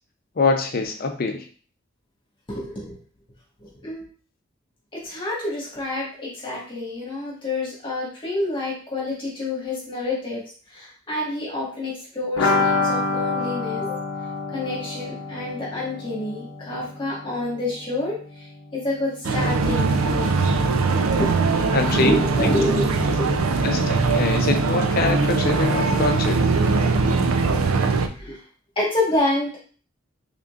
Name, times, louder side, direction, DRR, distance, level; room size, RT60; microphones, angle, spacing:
voice 1, 0.4-1.5 21.7-22.1 22.4-22.5 23.6-26.5, left 3 dB, 45° left, 5 dB, 0.5 m, -24 dB
voice 2, 2.5-2.9 3.6-4.1 4.9-10.4 10.7-14.0 14.5-18.2 18.7-20.5 21.2-23.4 23.9-24.0 27.0-27.6 28.1-28.4 28.8-29.6, left 2 dB, 25° left, -6 dB, 1.4 m, -28 dB
sound 1, 12.4-18.0 18.2-18.3 18.6-18.7, left 3 dB, 85° left, 0.7 m, -27 dB
sound 2, 19.2-28.1, right 3 dB, 90° right, 0.4 m, -21 dB
3.7 x 3.6 x 2.4 m, 0.41 s
head